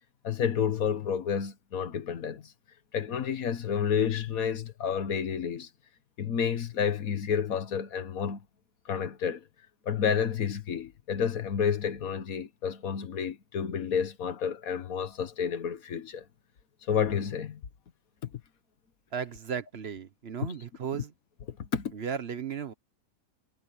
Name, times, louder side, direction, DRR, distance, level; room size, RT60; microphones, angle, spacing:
voice 1, 0.2-2.5 2.9-5.7 6.2-8.4 8.8-9.4 9.8-16.2 16.8-17.6 18.2-18.3 20.9-21.0 21.5-21.9, left 7 dB, 80° left, 1.7 m, -30 dB
voice 2, 19.1-21.1 21.9-22.7, right 7 dB, 50° right, 1.1 m, -35 dB
omnidirectional pair, 1.5 m